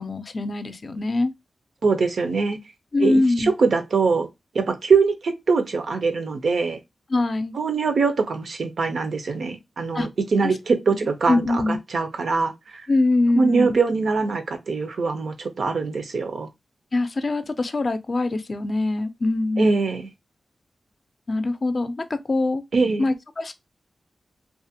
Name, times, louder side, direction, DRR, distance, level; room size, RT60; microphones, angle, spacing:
voice 1, 0.0-1.3 2.9-3.5 7.1-7.6 9.9-10.1 10.9-11.8 12.9-13.8 16.9-19.9 21.3-22.6 23.0-23.5, left 2 dB, 50° left, 0.4 m, -23 dB
voice 2, 1.8-2.6 3.0-4.3 4.5-6.8 7.5-12.9 13.3-16.5 19.6-20.1 22.7-23.1, right 4 dB, 80° right, 0.5 m, -23 dB
2.4 x 2.1 x 2.7 m
cardioid pair, 60°, 0 cm